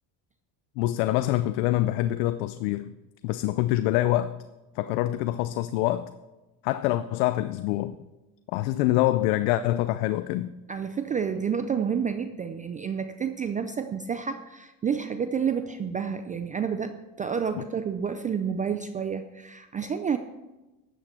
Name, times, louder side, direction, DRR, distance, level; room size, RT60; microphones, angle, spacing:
voice 1, 0.8-2.9 3.2-4.4 4.8-6.1 6.6-8.0 8.5-10.5 17.5-17.6, left 15 dB, 85° left, 12 dB, 0.6 m, -25 dB
voice 2, 10.7-20.2, right 7 dB, 20° right, 9 dB, 0.3 m, -29 dB
12.5 x 8.3 x 4.3 m, 1.1 s
cardioid pair, 125°, 43 cm